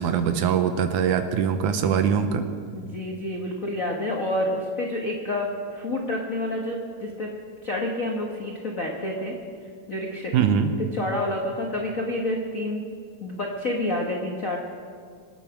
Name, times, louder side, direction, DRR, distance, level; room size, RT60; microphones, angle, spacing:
voice 1, 0.0-2.5 10.3-10.7, right 7 dB, 75° right, 9 dB, 2.0 m, -22 dB
voice 2, 2.7-7.3 7.6-9.3 9.9-10.3 10.9-12.8 13.2-14.6, left 1 dB, 80° left, 0 dB, 0.7 m, -28 dB
25.0 x 9.0 x 5.9 m, 2.1 s
omnidirectional pair, 4.0 m